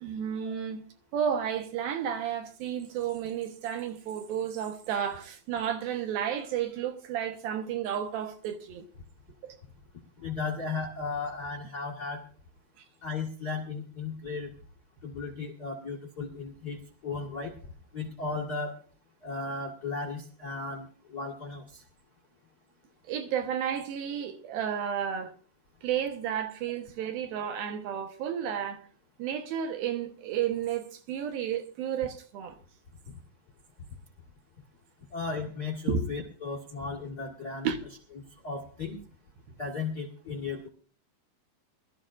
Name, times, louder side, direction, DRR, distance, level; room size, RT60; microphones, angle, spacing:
voice 1, 0.0-0.8 1.1-8.8 9.4-9.6 23.1-25.3 25.8-28.8 29.2-32.6 35.9-36.0 37.6-37.8, right 8 dB, 75° right, 2.9 m, -32 dB
voice 2, 10.2-12.2 13.0-14.5 15.0-17.5 17.9-18.8 19.2-21.8 35.1-37.7 38.4-39.0 39.6-40.7, left 4 dB, 45° left, 1.3 m, -35 dB
23.0 x 13.0 x 2.5 m
omnidirectional pair, 4.4 m